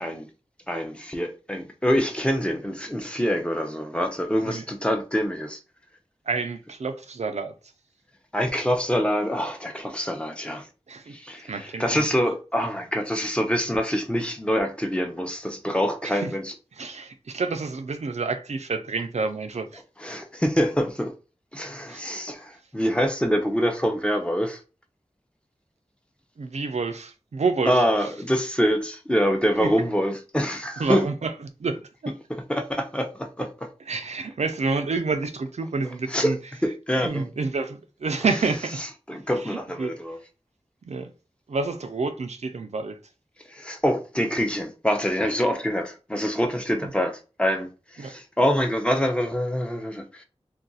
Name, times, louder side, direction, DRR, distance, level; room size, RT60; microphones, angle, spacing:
voice 1, 0.7-5.6 8.3-10.7 11.1-16.5 20.0-21.1 21.5-24.6 27.7-31.0 32.5-33.7 36.1-36.3 36.6-37.3 39.1-40.2 43.5-50.2, equal, 10° left, 0.6 m, -25 dB
voice 2, 6.3-7.5 10.9-11.1 11.5-12.1 16.0-16.3 16.7-19.8 21.9-22.0 26.4-27.8 29.6-29.7 30.8-31.3 31.6-32.1 33.9-36.4 37.0-38.8 39.4-40.0 40.8-41.1 41.5-43.0 46.8-46.9 48.0-48.2, right 4 dB, 90° right, 0.5 m, -28 dB
2.5 x 2.3 x 3.9 m
wide cardioid pair, 60°, 11 cm